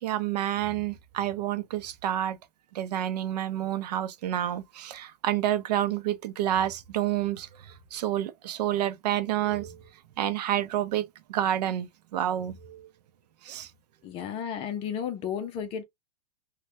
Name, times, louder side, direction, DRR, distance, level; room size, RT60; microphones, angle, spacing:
voice 1, 0.0-2.4 2.7-9.8 10.2-12.9 13.4-13.7, right 11 dB, 80° right, 0.6 m, -29 dB
voice 2, 14.0-15.8, left 8 dB, 25° left, 0.5 m, -33 dB
3.1 x 2.2 x 2.7 m
supercardioid pair, 155°, 21 cm